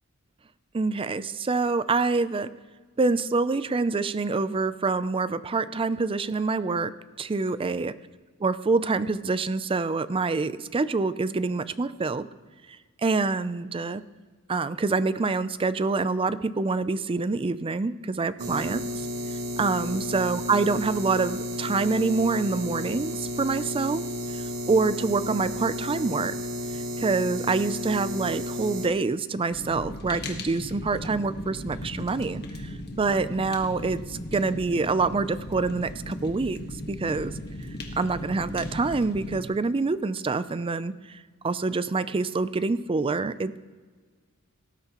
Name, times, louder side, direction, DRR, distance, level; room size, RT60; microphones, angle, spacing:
voice 1, 0.7-2.5 3.0-6.9 7.2-7.9 8.4-12.3 13.0-14.0 14.5-19.1 19.6-24.0 24.3-26.3 26.7-36.6 36.9-37.3 38.0-43.6, right 3 dB, 25° right, 14 dB, 0.4 m, -26 dB
sound 1, 18.4-28.9, left 1 dB, 70° right, 1.1 m, -33 dB
Fire, 29.5-39.4, left 1 dB, 50° left, 1.5 m, -37 dB
18.5 x 12.5 x 3.0 m, 1.5 s
head